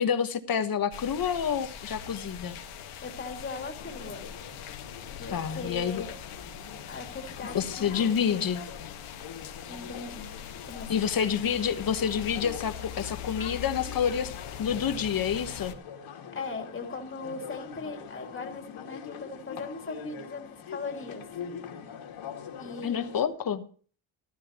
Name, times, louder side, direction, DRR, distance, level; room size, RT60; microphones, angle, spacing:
voice 1, 0.0-2.6 5.3-6.0 7.5-8.6 10.9-14.3 14.6-15.7 22.8-23.6, left 7 dB, 45° left, 9 dB, 1.2 m, -28 dB
sound 1, 0.9-15.7, left 9 dB, 85° left, 1.7 m, -42 dB
voice 2, 3.0-4.3 5.2-6.1 6.9-7.9 9.7-10.3 10.7-10.9 16.3-21.2 22.6-23.4, left 4 dB, 25° left, 2 dB, 2.2 m, -39 dB
sound 2, 3.8-23.3, left 7 dB, 70° left, 2.5 m, -44 dB
14.0 x 14.0 x 2.9 m, 0.41 s
cardioid pair, 150°, 49 cm